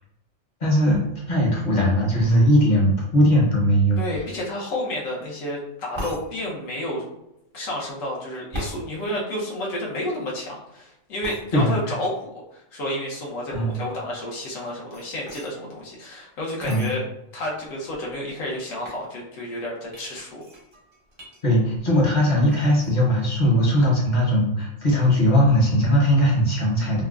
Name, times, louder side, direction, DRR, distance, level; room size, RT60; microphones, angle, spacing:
voice 1, 0.6-1.0 1.3-4.0 11.5-11.8 13.5-13.8 16.7-16.9 21.4-27.0, equal, 40° left, -3 dB, 0.7 m, -19 dB
voice 2, 4.0-7.0 7.5-17.0 17.3-20.4, left 1 dB, 70° left, -3 dB, 1.2 m, -31 dB
sound 1, 5.9-6.2 8.5-8.8 11.2-11.4 14.5-15.5 16.6-16.9 17.6-17.7 17.9-18.3 18.8-19.0 19.9-21.4 21.7-22.2 22.5-22.9, equal, 50° right, 0.3 m, -37 dB
3.5 x 2.1 x 2.3 m, 0.85 s
omnidirectional pair, 1.4 m